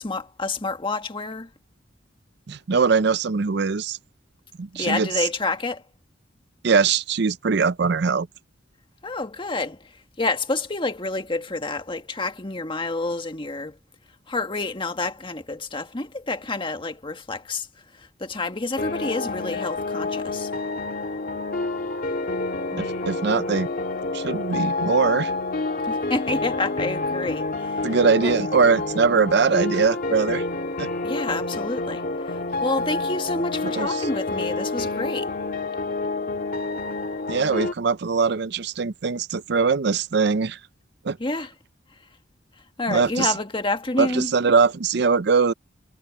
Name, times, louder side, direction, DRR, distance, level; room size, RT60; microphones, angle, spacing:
voice 1, 0.0-1.5 4.7-5.8 9.0-13.8 14.3-17.7 17.9-20.5 25.8-28.0 28.2-28.3 31.0-35.3 41.2-41.5 42.8-44.3, left 2 dB, 25° left, 1.7 m, -29 dB
voice 2, 2.5-4.0 4.6-5.3 6.6-8.3 22.7-23.7 24.1-25.3 27.8-30.4 30.8-30.9 33.6-34.1 37.3-40.6 41.0-41.2 42.9-43.3 44.0-45.5, right 5 dB, 60° right, 0.5 m, -21 dB
sound 1, 18.8-37.7, left 3 dB, 50° left, 1.8 m, -28 dB
head